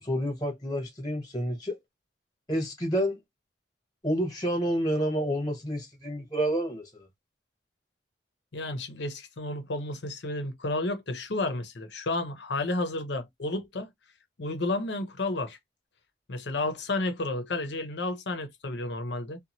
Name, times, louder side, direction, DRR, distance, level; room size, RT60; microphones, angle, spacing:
voice 1, 0.0-1.8 2.5-3.2 4.0-7.1, equal, 20° left, 1.1 m, -29 dB
voice 2, 8.5-13.9 14.4-15.6 16.3-19.4, left 2 dB, 75° left, 0.8 m, -31 dB
2.7 x 2.3 x 2.9 m
head